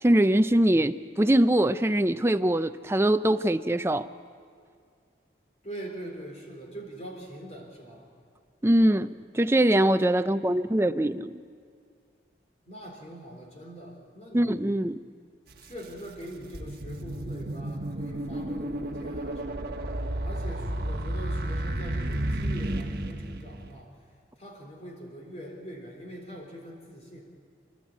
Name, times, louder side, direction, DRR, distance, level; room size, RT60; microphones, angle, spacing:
voice 1, 0.0-4.1 8.6-11.4 14.3-15.0, right 1 dB, 15° right, 11 dB, 0.4 m, -23 dB
voice 2, 5.6-8.1 12.7-14.9 15.6-19.8 20.2-27.2, equal, 35° left, 1 dB, 4.1 m, -43 dB
sound 1, 15.5-15.6 16.2-23.8, right 1 dB, 55° right, 1.4 m, -32 dB
29.0 x 11.5 x 8.6 m, 2.2 s
head